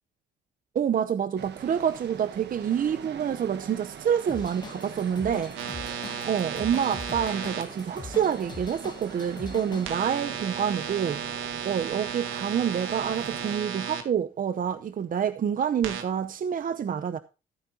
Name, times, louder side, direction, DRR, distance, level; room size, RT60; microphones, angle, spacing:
voice 1, 0.7-5.5 6.3-11.2 11.6-17.2, right 8 dB, 45° right, 0.8 m, -27 dB
sound 1, 1.4-13.6, right 7 dB, 60° right, 1.4 m, -43 dB
Drum kit / Drum, 4.3-9.9, left 3 dB, 20° left, 1.9 m, -41 dB
sound 2, 5.6-7.6 9.8-14.0 15.8-16.0, right 8 dB, 85° right, 1.9 m, -34 dB
15.0 x 9.0 x 2.8 m
cardioid pair, 95°, 20 cm